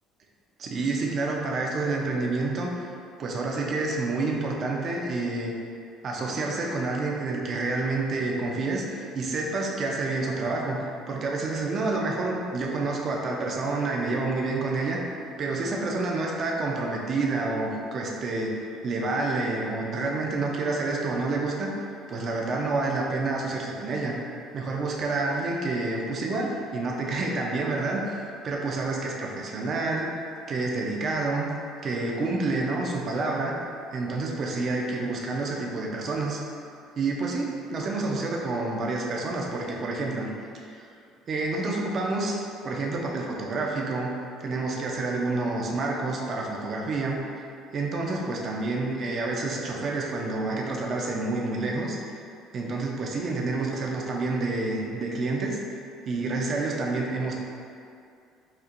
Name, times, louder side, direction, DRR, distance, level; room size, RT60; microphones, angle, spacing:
voice 1, 0.6-2.9 3.2-5.5 6.0-10.8 11.1-15.0 15.4-21.7 22.1-24.2 24.5-28.2 28.4-30.1 30.4-31.5 31.8-33.6 33.9-36.4 37.0-40.3 40.7-40.8 41.3-44.1 44.4-47.2 47.7-52.0 52.5-55.8 56.1-57.3, right 3 dB, 45° right, -1 dB, 0.5 m, -28 dB
4.3 x 2.5 x 2.5 m, 2.5 s
supercardioid pair, 100°, 0 cm